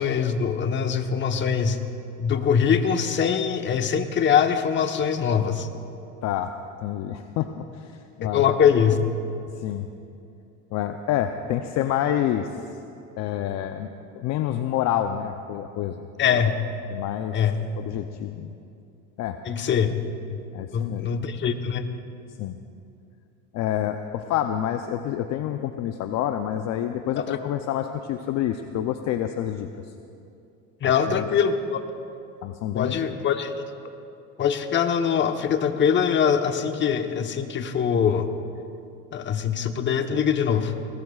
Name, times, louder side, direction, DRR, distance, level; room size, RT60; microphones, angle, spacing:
voice 1, 0.0-1.8 2.2-5.7 8.2-9.0 16.2-16.6 17.3-17.7 19.5-20.0 20.3-20.4 20.7-21.8 27.2-27.4 30.8-31.8 32.7-33.5 34.4-38.3 39.1-40.7, left 7 dB, 35° left, 7 dB, 1.1 m, -23 dB
voice 2, 6.2-6.5 6.8-8.4 9.6-9.9 10.7-12.5 13.2-13.9 14.1-16.1 16.9-17.4 17.8-18.5 19.2-19.4 20.5-21.1 22.4-22.6 23.5-29.7 30.8-31.2 32.4-33.0, left 11 dB, 55° left, 7 dB, 0.6 m, -28 dB
22.0 x 19.0 x 2.4 m, 2.6 s
supercardioid pair, 105°, 33 cm